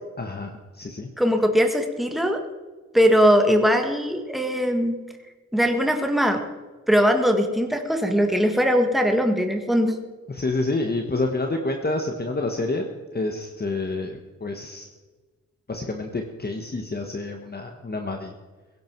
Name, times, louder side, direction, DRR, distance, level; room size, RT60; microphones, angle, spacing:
voice 1, 0.2-1.1 10.3-12.9 13.1-14.9 15.7-18.3, left 2 dB, 35° left, 3 dB, 1.4 m, -28 dB
voice 2, 1.2-2.4 2.9-5.0 5.5-6.4 6.9-10.0, equal, ahead, 4 dB, 1.8 m, -20 dB
16.5 x 16.0 x 4.6 m, 1.3 s
wide cardioid pair, 95°, 29 cm